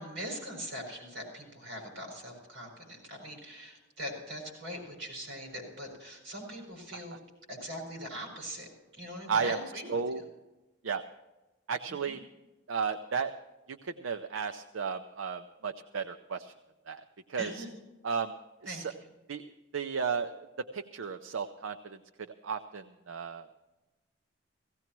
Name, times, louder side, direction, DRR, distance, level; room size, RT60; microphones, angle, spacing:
voice 1, 0.0-7.2 7.5-10.0 11.9-12.2 17.3-17.7 18.6-19.1, equal, 55° right, 1 dB, 6.1 m, -41 dB
voice 2, 9.9-10.2 10.8-11.0 11.7-12.2 12.7-13.3 13.7-16.5 16.9-17.0 17.3-17.6 18.0-18.3 18.7-18.9 19.3-19.4 19.7-20.5 20.7-23.5, right 6 dB, 75° right, 7 dB, 0.6 m, -34 dB
17.0 x 16.5 x 3.0 m, 1.1 s
head